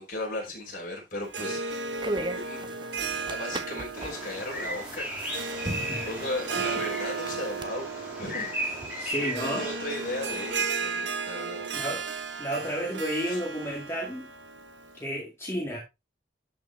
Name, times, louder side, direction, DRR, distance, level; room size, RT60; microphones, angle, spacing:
voice 1, 0.0-2.6 3.3-5.4 6.0-8.5 8.9-11.7 13.3-13.4, left 1 dB, 50° left, 5.1 m, -36 dB
Harp, 1.2-15.0, right 4 dB, 90° right, 1.2 m, -35 dB
sound 1, 1.7-7.7, right 2 dB, 25° right, 0.7 m, -38 dB
Bird vocalization bird call bird song, 3.9-10.5, equal, 10° right, 3.2 m, -36 dB
voice 2, 9.0-9.7 11.7-12.0 12.4-14.3 15.0-15.8, equal, 15° left, 2.0 m, -32 dB
12.0 x 5.4 x 3.2 m
head